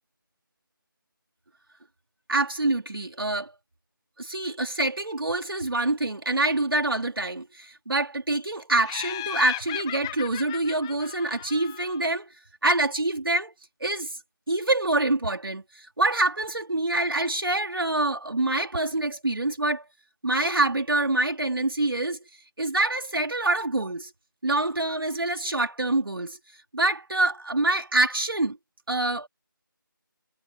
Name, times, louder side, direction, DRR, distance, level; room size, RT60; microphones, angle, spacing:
voice 1, 2.3-3.5 4.2-12.3 12.6-13.5 13.8-14.2 14.5-19.8 20.2-22.2 22.6-24.1 24.4-26.4 26.7-28.6 28.9-29.3, right 2 dB, 85° right, 3.2 m, -26 dB
Laughter, 8.8-12.2, left 16 dB, 10° left, 1.1 m, -36 dB
figure-of-eight pair, 170°, 12 cm